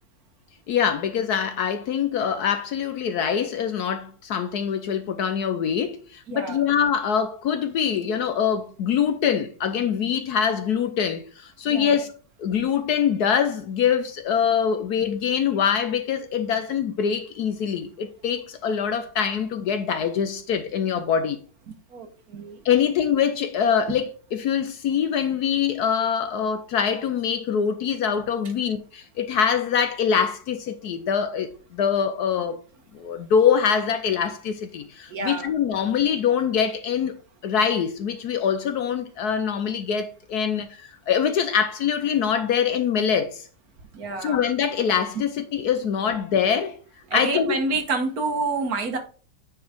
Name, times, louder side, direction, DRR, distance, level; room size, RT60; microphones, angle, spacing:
voice 1, 0.7-12.1 12.4-21.4 22.6-32.6 32.9-37.2 37.4-43.5 44.2-46.8 47.1-47.6, left 7 dB, 65° left, 1.1 m, -24 dB
voice 2, 6.3-6.6 11.7-12.0 21.9-22.6 35.1-35.5 43.9-44.4 45.1-45.2 47.1-49.0, right 3 dB, 55° right, 1.5 m, -28 dB
9.3 x 4.6 x 3.6 m
omnidirectional pair, 2.0 m